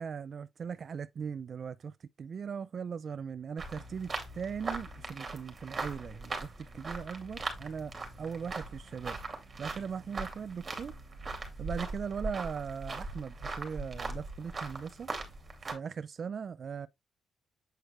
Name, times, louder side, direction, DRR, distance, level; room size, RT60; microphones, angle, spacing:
voice 1, 0.0-11.0 11.6-15.1 15.6-16.9, right 6 dB, 55° right, 0.3 m, -39 dB
sound 1, 3.6-15.7, right 3 dB, 40° right, 2.5 m, -40 dB
7.9 x 4.5 x 3.1 m
cardioid pair, 85°, 0 cm